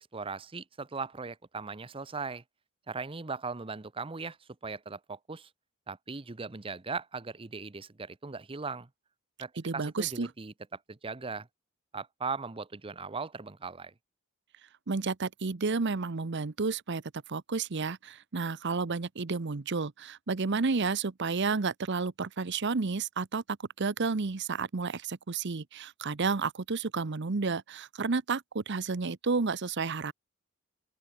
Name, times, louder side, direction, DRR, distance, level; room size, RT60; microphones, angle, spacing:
voice 1, 0.0-2.4 2.9-5.5 5.9-8.9 9.4-11.5 11.9-13.9, right 4 dB, 25° right, 0.7 m, -39 dB
voice 2, 9.6-10.3 14.9-17.0 17.3-30.1, right 4 dB, 55° right, 0.8 m, -31 dB
open air
head